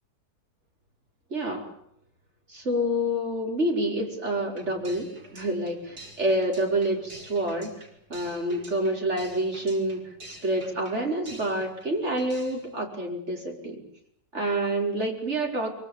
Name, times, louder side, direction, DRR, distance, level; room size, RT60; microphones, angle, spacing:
voice 1, 1.3-1.7 2.5-7.7 8.1-13.8 14.3-15.7, right 1 dB, 40° right, 1 dB, 5.6 m, -28 dB
sound 1, 4.5-11.9 12.2-12.7, right 2 dB, 60° right, 6.3 m, -47 dB
24.5 x 24.0 x 8.9 m, 0.71 s
omnidirectional pair, 1.9 m